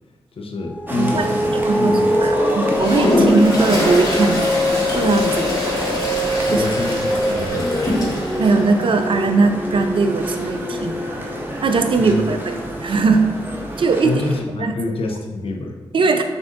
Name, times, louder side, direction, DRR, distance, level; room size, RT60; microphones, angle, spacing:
voice 1, 0.4-2.3 6.5-7.9 12.0-12.3 14.0-15.8, left 2 dB, 60° left, 2 dB, 0.6 m, -26 dB
sound 1, 0.6-13.4, left 1 dB, 15° left, 0.7 m, -25 dB
sound 2, 0.9-14.4, equal, 20° right, 0.8 m, -29 dB
voice 2, 1.0-4.5 4.9-5.8 6.5-6.6 8.0-11.0 11.6-13.3 13.8-14.2 14.6-14.9 15.9-16.2, right 4 dB, 50° right, 7 dB, 0.4 m, -20 dB
Toilet flush, 2.7-8.5, left 1 dB, 35° left, 1.4 m, -23 dB
6.3 x 2.6 x 2.5 m, 1.2 s
supercardioid pair, 40°, 11 cm